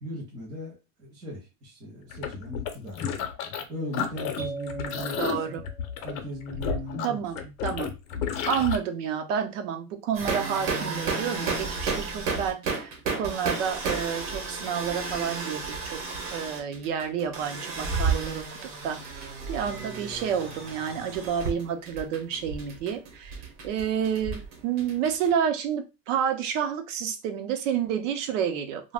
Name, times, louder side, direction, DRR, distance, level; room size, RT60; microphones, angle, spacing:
voice 1, 0.0-3.0 3.7-5.6 6.0-7.5, equal, 10° right, -4 dB, 0.4 m, -38 dB
sound 1, 2.1-3.6 3.9-8.8, left 7 dB, 65° left, 0.7 m, -32 dB
sound 2, 4.4-6.3, right 4 dB, 85° right, 0.9 m, -40 dB
voice 2, 5.2-5.6 7.0-7.9 8.5-16.0 16.3-23.4 23.6-28.9, right 8 dB, 55° right, 6 dB, 0.7 m, -30 dB
sound 3, 10.1-25.3, right 4 dB, 40° right, 1.0 m, -32 dB
2.4 x 2.2 x 3.4 m, 0.27 s
supercardioid pair, 160°, 44 cm